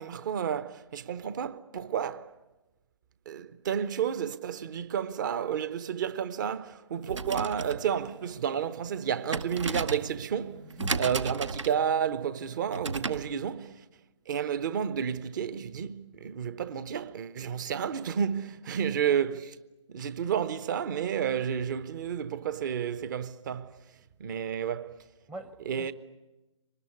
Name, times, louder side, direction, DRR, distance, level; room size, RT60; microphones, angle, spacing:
voice 1, 0.0-2.3 3.3-10.7 11.0-13.8 14.3-19.6 19.9-23.7 24.2-24.9 25.7-25.9, right 8 dB, 40° right, 1.0 m, -31 dB
sound 1, 7.0-13.3, right 4 dB, 70° right, 1.1 m, -35 dB
voice 2, 18.8-19.2 25.3-25.9, right 1 dB, 10° right, 0.8 m, -44 dB
24.0 x 20.5 x 9.9 m
figure-of-eight pair, 135°, 16 cm